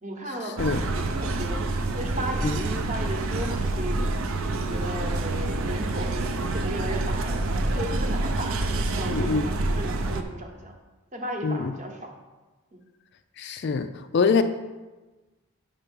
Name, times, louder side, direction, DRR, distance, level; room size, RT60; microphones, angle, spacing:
voice 1, 0.0-0.6 1.0-1.6 1.9-4.1 4.5-10.8 11.1-12.1, right 1 dB, 30° right, 3 dB, 0.9 m, -35 dB
sound 1, 0.6-10.2, right 2 dB, 65° right, 0.5 m, -27 dB
voice 2, 9.1-9.5 11.4-11.7 13.4-13.9 14.1-14.4, left 5 dB, 50° left, 9 dB, 0.3 m, -24 dB
5.7 x 5.6 x 5.3 m, 1.2 s
head